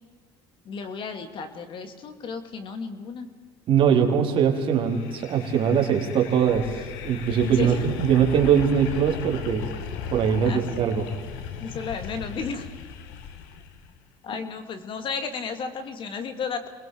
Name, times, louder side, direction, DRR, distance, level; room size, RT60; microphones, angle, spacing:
voice 1, 0.7-3.3 7.4-7.8 10.4-10.6 11.6-12.7 14.2-16.7, left 5 dB, 50° left, 7 dB, 2.3 m, -33 dB
voice 2, 3.7-6.8 7.0-9.7 10.1-11.1, right 7 dB, 50° right, 2 dB, 3.5 m, -21 dB
sound 1, 4.7-13.9, left 7 dB, 90° left, 1.5 m, -36 dB
28.0 x 21.5 x 4.6 m, 1.5 s
supercardioid pair, 100°, 11 cm